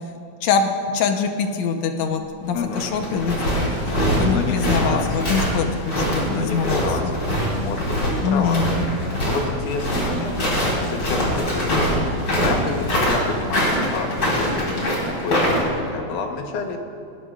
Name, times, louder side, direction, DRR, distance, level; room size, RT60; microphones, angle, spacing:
voice 1, 0.4-3.7 4.2-7.1 8.2-8.7, left 6 dB, 70° left, 5 dB, 2.1 m, -24 dB
voice 2, 2.5-2.9 4.2-5.2 6.3-8.6 9.0-10.3 10.8-12.0 12.4-16.8, left 4 dB, 90° left, 3 dB, 2.7 m, -29 dB
sound 1, 2.5-15.7, equal, 35° left, 4.0 m, -23 dB
19.5 x 19.5 x 2.4 m, 2.6 s
omnidirectional pair, 3.5 m